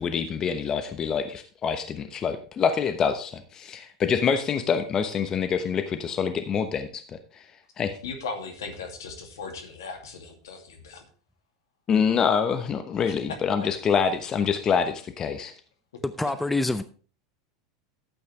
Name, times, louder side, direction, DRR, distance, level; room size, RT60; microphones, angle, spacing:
voice 1, 0.0-7.5 7.8-8.0 11.9-15.5, left 6 dB, 30° left, 1.0 m, -26 dB
voice 2, 8.0-11.1 13.1-13.2 13.6-13.7 16.2-16.3, left 4 dB, 70° left, 2.4 m, -38 dB
voice 3, 16.0-16.8, left 2 dB, 5° left, 0.6 m, -26 dB
13.0 x 8.5 x 3.3 m
figure-of-eight pair, 85°, 2 cm